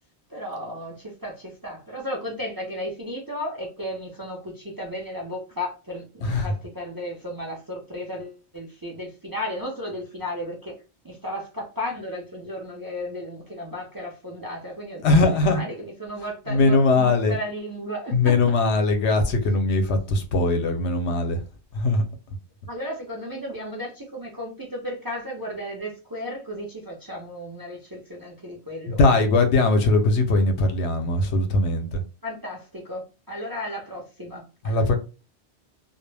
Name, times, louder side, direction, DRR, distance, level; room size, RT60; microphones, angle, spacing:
voice 1, 0.3-10.7 11.0-18.5 22.7-29.0 32.2-34.8, left 1 dB, 30° right, 0.4 m, -34 dB
voice 2, 6.2-6.5 15.0-15.6 16.5-17.4 18.1-21.4 21.7-22.1 28.9-32.0 34.6-35.0, left 2 dB, 80° left, 0.9 m, -20 dB
2.2 x 2.0 x 3.2 m
omnidirectional pair, 1.1 m